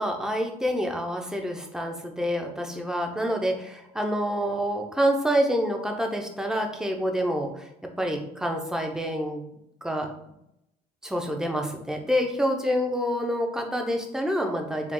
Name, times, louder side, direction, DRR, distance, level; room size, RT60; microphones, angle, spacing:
voice 1, 0.0-7.7 8.0-9.4 9.8-10.1 11.0-14.9, equal, 5° right, 3 dB, 0.7 m, -27 dB
4.9 x 2.3 x 3.8 m, 0.80 s
cardioid pair, 110°, 17 cm